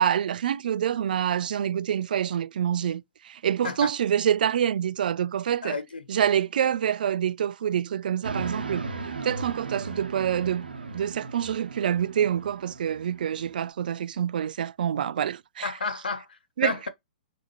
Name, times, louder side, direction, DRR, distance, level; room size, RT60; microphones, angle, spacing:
voice 1, 0.0-5.8 6.1-8.9 9.2-15.7 16.6-16.7, right 9 dB, 70° right, 0.3 m, -26 dB
voice 2, 5.6-6.0 15.6-16.9, left 4 dB, 90° left, 0.7 m, -32 dB
sound 1, 8.2-13.7, right 4 dB, 90° right, 0.9 m, -37 dB
3.9 x 2.8 x 2.9 m
hypercardioid pair, 125°, 5 cm